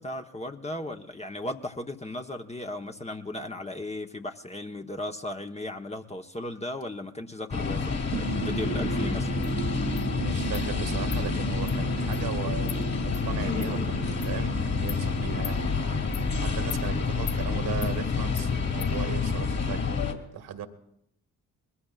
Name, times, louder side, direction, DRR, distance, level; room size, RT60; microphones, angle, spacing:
voice 1, 0.0-9.3, left 1 dB, 15° left, 4 dB, 1.1 m, -36 dB
sound 1, 7.5-20.1, left 4 dB, 35° left, 2.6 m, -28 dB
sound 2, 8.1-18.5, right 6 dB, 75° right, 1.9 m, -37 dB
Insect, 9.4-9.5 10.0-10.1 10.5-10.7 11.1-11.2 11.7-11.8 12.1-12.2 12.7-12.8 13.1-13.2 13.6-13.7 14.2-14.3 14.9-15.0 15.4-15.6 16.1-16.3 16.7-16.8 17.3-17.4 17.8-17.9 18.4-18.5 18.8-18.9, left 13 dB, 80° left, 0.6 m, -39 dB
voice 2, 9.9-19.9 20.3-20.7, right 8 dB, 55° right, 7 dB, 1.8 m, -37 dB
22.5 x 14.5 x 2.4 m, 0.73 s
figure-of-eight pair, 45°, 45 cm